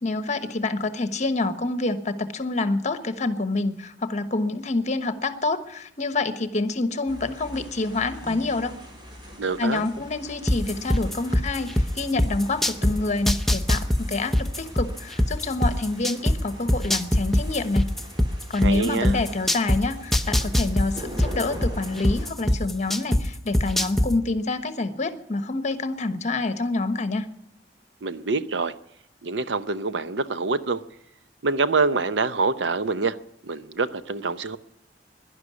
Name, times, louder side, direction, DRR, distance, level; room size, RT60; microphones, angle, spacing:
voice 1, 0.0-8.8 9.6-17.9 18.5-27.2, left 3 dB, 40° left, 1.1 m, -27 dB
sound 1, 7.1-22.3, equal, 25° right, 3.8 m, -43 dB
voice 2, 9.4-9.8 18.6-19.2 28.0-28.7 29.2-30.8 31.4-33.2 33.4-34.6, right 4 dB, 85° right, 0.8 m, -25 dB
sound 2, 10.5-12.9 13.3-16.4 16.7-19.8 20.1-23.2 23.5-24.1, left 1 dB, ahead, 0.7 m, -21 dB
11.5 x 11.0 x 9.6 m
head